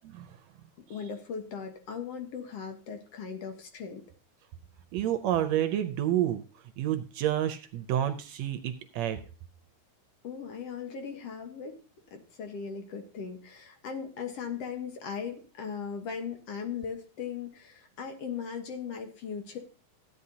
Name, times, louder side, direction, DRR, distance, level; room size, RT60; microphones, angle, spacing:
voice 1, 0.9-4.0 10.2-11.8 12.1-19.6, left 6 dB, 60° left, 5 dB, 2.1 m, -38 dB
voice 2, 4.9-6.4 6.8-9.2, right 11 dB, 75° right, 9 dB, 1.8 m, -29 dB
15.0 x 9.6 x 2.8 m, 0.35 s
omnidirectional pair, 3.5 m